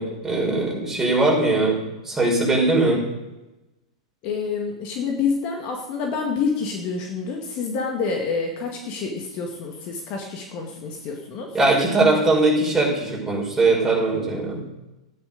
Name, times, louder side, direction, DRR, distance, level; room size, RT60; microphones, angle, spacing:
voice 1, 0.0-3.0 11.5-14.6, right 2 dB, 10° right, -3 dB, 5.6 m, -20 dB
voice 2, 4.2-11.6, left 5 dB, 45° left, 2 dB, 2.0 m, -27 dB
12.0 x 10.0 x 5.3 m, 0.99 s
figure-of-eight pair, 100°, 3 cm